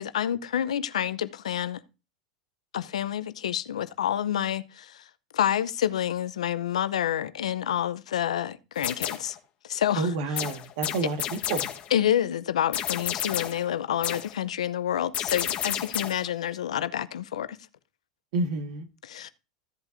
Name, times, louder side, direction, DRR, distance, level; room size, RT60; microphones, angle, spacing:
voice 1, 0.0-1.8 2.7-5.0 5.3-9.4 9.6-10.4 11.9-17.6 19.0-19.3, left 10 dB, 85° left, 0.6 m, -28 dB
sound 1, 8.8-9.4 10.4-11.9 12.7-13.7 14.0-14.4 15.1-16.3, left 10 dB, 40° left, 1.3 m, -31 dB
voice 2, 10.0-11.6 18.3-18.9, right 3 dB, 65° right, 1.6 m, -29 dB
15.0 x 8.0 x 2.6 m
hypercardioid pair, 105°, 3 cm